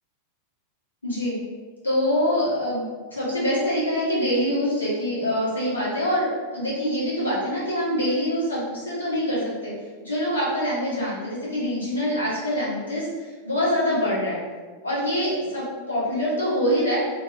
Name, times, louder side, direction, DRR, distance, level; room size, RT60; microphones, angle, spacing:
voice 1, 1.0-1.4 1.8-2.8 3.1-9.7 10.0-14.4 14.8-17.0, equal, 80° left, -8 dB, 0.9 m, -25 dB
2.6 x 2.2 x 2.3 m, 1.4 s
figure-of-eight pair, 90°, 0 cm